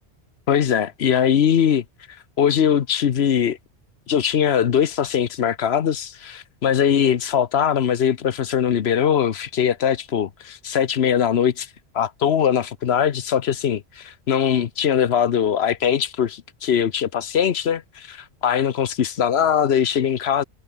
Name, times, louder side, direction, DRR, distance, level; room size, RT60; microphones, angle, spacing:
voice 1, 0.5-1.8 2.4-3.6 4.1-11.7 11.9-20.4, left 8 dB, 70° left, 1.1 m, -21 dB
omnidirectional pair, 1.1 m